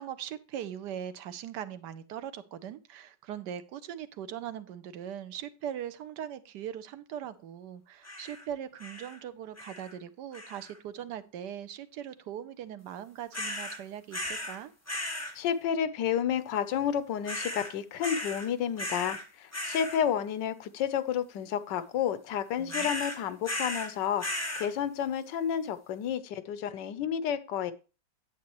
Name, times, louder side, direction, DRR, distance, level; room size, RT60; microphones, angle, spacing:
voice 1, 0.0-14.7 22.6-23.0, right 10 dB, 75° right, 1.2 m, -40 dB
sound 1, 8.0-8.4 8.8-9.2 9.6-9.9 10.3-10.8 13.3-13.8 14.1-14.6 14.9-15.3 17.3-17.7 18.0-18.5 18.8-19.2 19.5-20.0 22.7-23.9 24.2-24.7, left 1 dB, 10° left, 1.4 m, -36 dB
voice 2, 15.3-24.2 24.5-27.7, left 9 dB, 80° left, 1.4 m, -31 dB
9.5 x 8.1 x 3.0 m
omnidirectional pair, 1.9 m